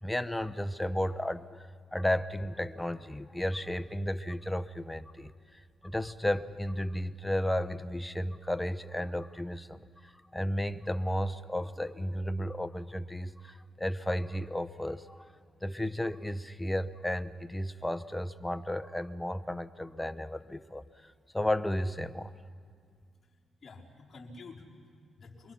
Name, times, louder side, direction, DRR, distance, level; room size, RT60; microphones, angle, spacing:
voice 1, 0.0-15.3 15.6-22.3, left 1 dB, 10° left, 14 dB, 0.9 m, -33 dB
voice 2, 22.9-25.5, left 3 dB, 45° left, -3 dB, 4.4 m, -51 dB
27.5 x 23.0 x 5.9 m, 2.1 s
supercardioid pair, 60°, 0 cm